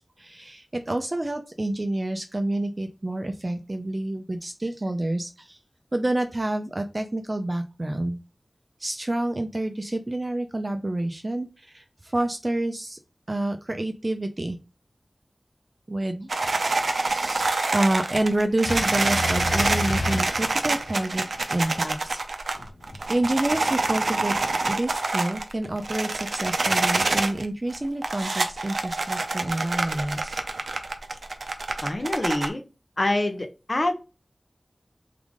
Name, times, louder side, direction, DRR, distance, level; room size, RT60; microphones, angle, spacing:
voice 1, 0.0-5.6 5.9-8.2 8.8-13.0 13.3-14.6 15.9-16.3 16.9-21.2 21.5-22.2 23.1-24.3 24.7-30.4, right 1 dB, 40° right, 6 dB, 0.5 m, -28 dB
sound 1, 16.3-27.5 27.7-32.5, right 3 dB, 90° right, 0.5 m, -26 dB
sound 2, 18.6-21.1 22.5-23.8, left 2 dB, 75° left, 0.5 m, -31 dB
voice 2, 31.8-32.6 33.0-33.9, left 1 dB, 45° left, 6 dB, 0.9 m, -25 dB
3.7 x 3.5 x 3.6 m, 0.30 s
wide cardioid pair, 50°, 0 cm